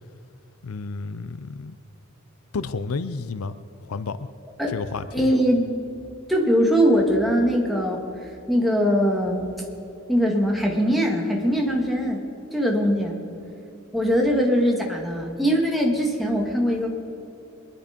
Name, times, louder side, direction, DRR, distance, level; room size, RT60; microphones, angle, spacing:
voice 1, 0.6-1.8 2.5-3.6 3.8-4.3 4.7-5.3, left 4 dB, 90° left, 13 dB, 0.6 m, -31 dB
voice 2, 5.1-5.6 6.3-9.5 10.1-12.2 12.5-13.2 13.9-16.9, equal, ahead, -1 dB, 2.1 m, -21 dB
23.0 x 11.0 x 5.2 m, 2.8 s
head